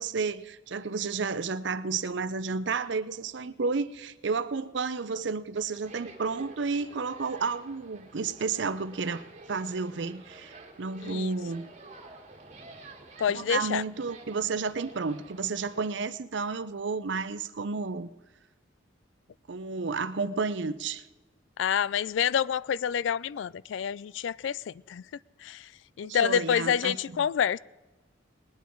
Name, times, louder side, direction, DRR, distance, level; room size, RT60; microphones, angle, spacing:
voice 1, 0.0-11.7 13.3-18.1 19.5-21.0 26.0-26.9, right 4 dB, 65° right, 0.6 m, -31 dB
sound 1, 5.7-15.9, right 2 dB, 35° right, 1.7 m, -50 dB
voice 2, 11.0-11.3 13.2-13.8 21.6-25.0 25.4-25.7 26.0-27.6, left 8 dB, 75° left, 0.3 m, -28 dB
20.0 x 9.4 x 4.6 m
head